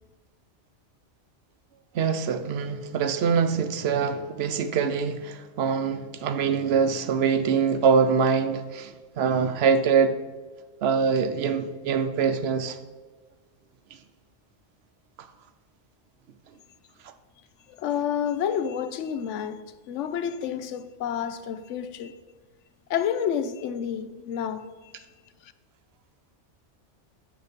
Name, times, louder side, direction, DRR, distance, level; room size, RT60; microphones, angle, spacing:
voice 1, 1.9-10.1 10.8-12.8, right 6 dB, 65° right, 0.8 m, -24 dB
voice 2, 17.7-22.1 22.9-25.1 25.4-25.5, left 8 dB, 85° left, 0.9 m, -30 dB
7.6 x 6.7 x 5.1 m
omnidirectional pair, 1.2 m